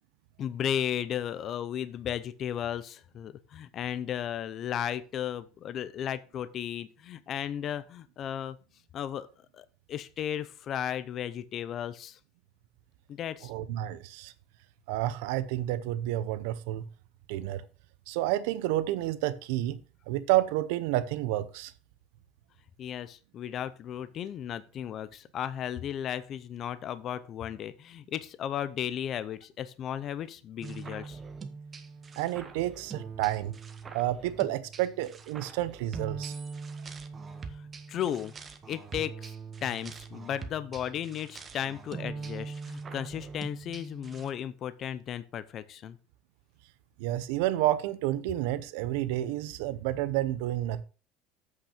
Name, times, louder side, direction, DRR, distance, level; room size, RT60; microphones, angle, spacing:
voice 1, 0.4-8.6 8.9-9.3 9.5-12.2 13.1-13.5 22.8-31.2 37.5-38.3 38.7-39.3 39.6-46.0, left 10 dB, 35° left, 0.6 m, -35 dB
voice 2, 13.4-14.3 14.9-16.8 17.3-17.6 18.1-19.8 20.1-21.7 32.2-33.5 33.9-36.3 47.0-50.8, right 14 dB, 75° right, 0.6 m, -30 dB
sound 1, 30.6-44.3, right 5 dB, 20° right, 0.9 m, -42 dB
7.9 x 5.9 x 5.0 m
cardioid pair, 160°, 0 cm